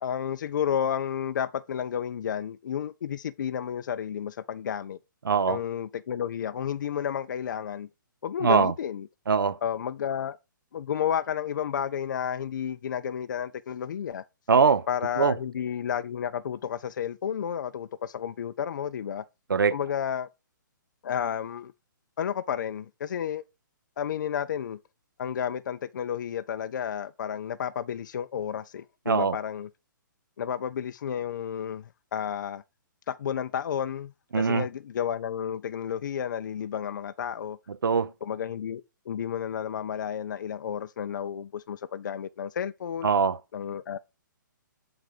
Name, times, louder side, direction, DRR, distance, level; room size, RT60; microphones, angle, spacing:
voice 1, 0.0-5.0 5.5-7.9 8.2-9.1 9.6-10.4 10.7-14.2 14.9-19.2 19.7-20.3 21.0-21.7 22.2-23.4 24.0-24.8 25.2-29.7 30.4-32.6 33.1-37.6 38.2-43.1 43.5-44.0, left 8 dB, 65° left, 0.4 m, -31 dB
voice 2, 5.3-5.6 8.4-8.7 9.3-9.6 14.5-14.9 15.2-15.3 19.5-19.8 29.1-29.4 34.3-34.6 37.8-38.1 43.0-43.4, right 5 dB, 90° right, 0.5 m, -22 dB
7.8 x 3.9 x 4.8 m
hypercardioid pair, 140°, 11 cm